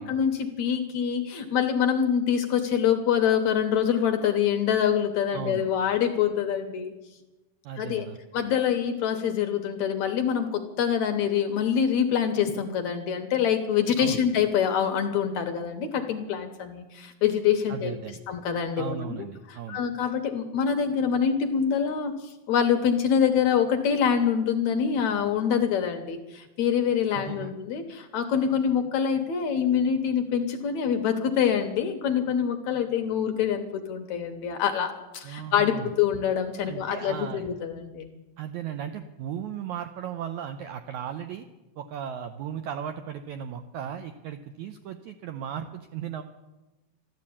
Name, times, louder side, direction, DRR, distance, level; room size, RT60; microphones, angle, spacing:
voice 1, 0.0-6.9 7.8-8.1 8.3-17.9 18.3-19.1 19.5-38.1, left 8 dB, 70° left, 6 dB, 1.9 m, -25 dB
voice 2, 5.3-5.7 7.6-8.2 14.0-14.2 17.7-18.2 18.8-19.8 27.1-27.5 35.2-35.9 36.6-37.4 38.4-41.5 41.8-46.2, right 9 dB, 85° right, 8 dB, 1.7 m, -36 dB
13.5 x 12.0 x 8.6 m, 1.1 s
omnidirectional pair, 4.2 m